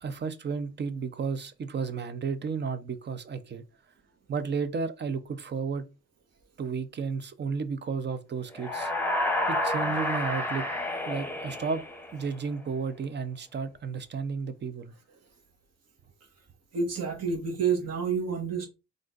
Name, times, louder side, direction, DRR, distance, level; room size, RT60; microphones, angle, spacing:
voice 1, 0.0-3.6 4.3-5.9 6.6-8.9 9.5-10.6 11.1-11.8 12.1-14.9, right 5 dB, 35° right, 0.6 m, -32 dB
sound 1, 8.5-12.4, left 1 dB, 5° left, 0.9 m, -30 dB
voice 2, 16.7-18.7, right 5 dB, 55° right, 1.5 m, -28 dB
3.7 x 2.6 x 3.8 m
cardioid pair, 90°, 30 cm